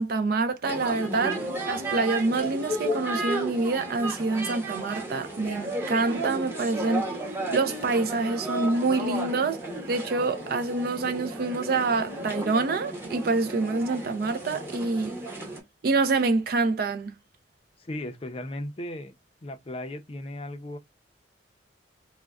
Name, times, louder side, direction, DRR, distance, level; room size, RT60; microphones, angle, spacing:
voice 1, 0.0-7.0 7.5-9.6 9.9-15.2 15.8-17.1, right 3 dB, 50° right, 0.4 m, -26 dB
Columbia Road Flower Market, 0.6-15.6, right 1 dB, 15° right, 0.8 m, -33 dB
voice 2, 17.8-19.1 19.4-20.8, left 1 dB, 30° left, 0.5 m, -36 dB
3.5 x 2.1 x 2.3 m
head